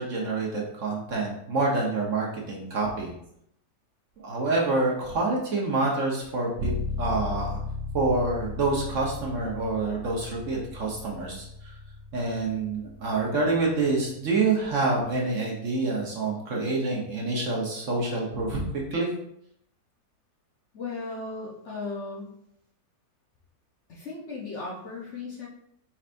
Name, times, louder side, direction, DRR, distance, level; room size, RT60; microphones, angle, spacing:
voice 1, 0.0-3.1 4.2-6.7 7.0-7.6 7.9-11.7 12.1-18.6 18.9-19.1, right 3 dB, 55° right, -2 dB, 1.2 m, -27 dB
sound 1, 6.6-14.3, left 3 dB, 85° right, 1.4 m, -36 dB
voice 2, 20.7-22.3 23.9-25.5, left 3 dB, 55° left, -4 dB, 1.0 m, -36 dB
4.7 x 4.4 x 2.5 m, 0.74 s
omnidirectional pair, 1.8 m